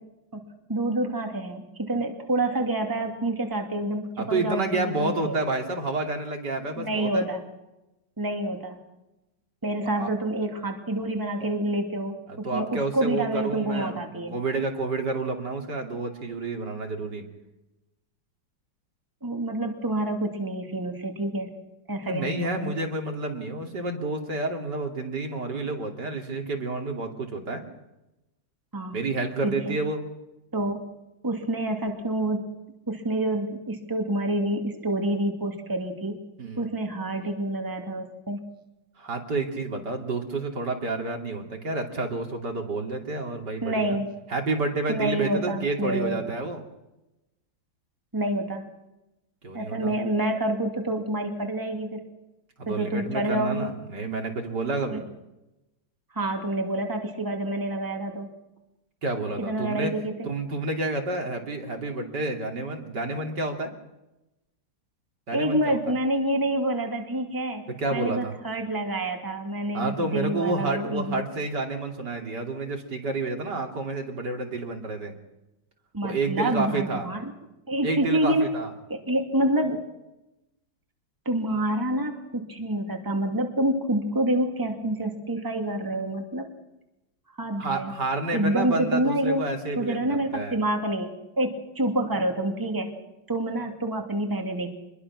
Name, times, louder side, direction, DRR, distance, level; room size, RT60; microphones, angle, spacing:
voice 1, 0.7-5.4 6.8-7.4 8.2-8.8 9.6-14.4 19.2-21.5 21.9-22.8 28.7-29.0 29.4-29.8 30.5-30.8 31.2-32.4 32.9-36.2 36.6-38.4 43.6-44.1 44.9-46.2 48.1-48.6 49.5-52.0 52.7-53.7 54.9-55.0 56.1-58.3 59.4-60.3 65.3-71.3 75.9-77.3 77.7-78.5 78.9-79.8 81.2-86.5 87.4-87.9 88.3-89.5 89.8-91.1 91.4-92.9 93.3-94.7, right 1 dB, 10° right, 3 dB, 2.5 m, -27 dB
voice 2, 4.2-7.3 10.0-10.1 12.3-17.2 22.0-27.6 28.9-30.0 36.4-36.7 39.0-44.0 44.3-46.6 49.4-49.9 52.6-55.0 59.0-59.9 60.2-63.7 65.3-65.9 67.7-68.4 69.7-75.1 76.0-77.1 77.8-78.7 87.6-90.6, right 2 dB, 60° right, 3 dB, 3.4 m, -29 dB
26.5 x 22.0 x 6.1 m, 0.95 s
omnidirectional pair, 2.1 m